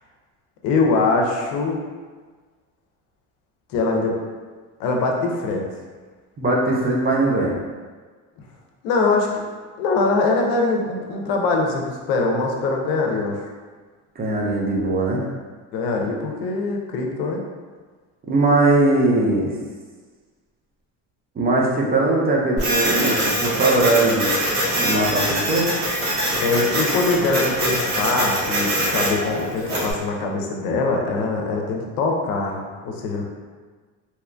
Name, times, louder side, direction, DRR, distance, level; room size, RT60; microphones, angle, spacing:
voice 1, 0.6-1.8 3.7-4.1 4.8-5.6 8.8-9.3 9.8-13.4 15.7-17.4 26.4-33.3, left 3 dB, 80° left, 1 dB, 0.6 m, -22 dB
voice 2, 6.4-7.6 14.2-15.3 18.3-19.5 21.4-24.3 24.8-25.7, right 2 dB, 25° right, -3 dB, 0.4 m, -20 dB
Printer, 22.6-29.9, right 1 dB, 85° right, 1.0 m, -23 dB
2.8 x 2.4 x 2.2 m, 1.4 s
supercardioid pair, 105°, 37 cm